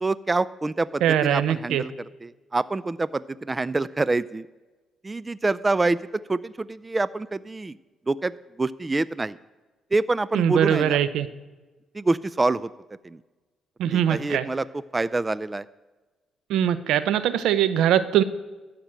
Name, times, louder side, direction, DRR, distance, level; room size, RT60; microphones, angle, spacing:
voice 1, 0.0-1.9 2.2-4.5 5.0-6.0 6.3-7.8 8.1-8.3 8.6-9.4 9.9-11.0 11.9-12.7 13.0-13.2 13.9-14.7 14.9-15.6, right 3 dB, 20° right, 18 dB, 0.3 m, -26 dB
voice 2, 1.0-1.8 10.3-11.3 13.8-14.5 16.5-18.2, right 10 dB, 85° right, 14 dB, 0.6 m, -22 dB
13.0 x 5.9 x 8.9 m, 1.2 s
cardioid pair, 90°, 0 cm